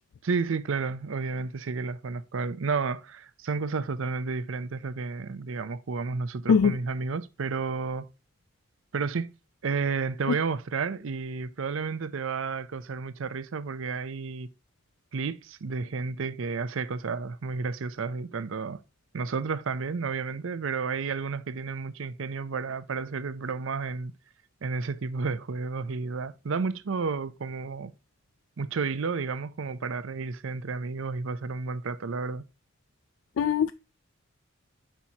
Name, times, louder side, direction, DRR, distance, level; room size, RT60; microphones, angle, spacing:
voice 1, 0.2-8.1 8.9-9.3 9.6-14.5 15.1-18.8 19.1-24.1 24.6-27.9 28.6-32.4, right 4 dB, 75° right, 0.5 m, -31 dB
voice 2, 33.4-33.7, left 6 dB, 70° left, 0.3 m, -21 dB
8.7 x 5.8 x 2.8 m
head